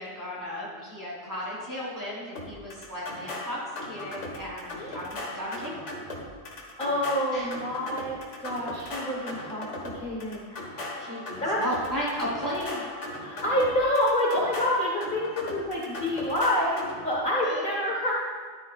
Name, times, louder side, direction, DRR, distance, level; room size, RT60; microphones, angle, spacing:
voice 1, 0.0-5.8 7.3-7.5 11.0-12.8 17.4-17.6, equal, 15° right, -7 dB, 3.5 m, -35 dB
sound 1, 2.4-17.2, left 1 dB, 70° left, 1.9 m, -38 dB
voice 2, 6.8-10.8 11.4-11.6 12.2-12.4 13.2-16.8 17.0-18.1, left 1 dB, 40° left, -4 dB, 1.6 m, -27 dB
13.5 x 11.0 x 2.5 m, 1.6 s
omnidirectional pair, 1.3 m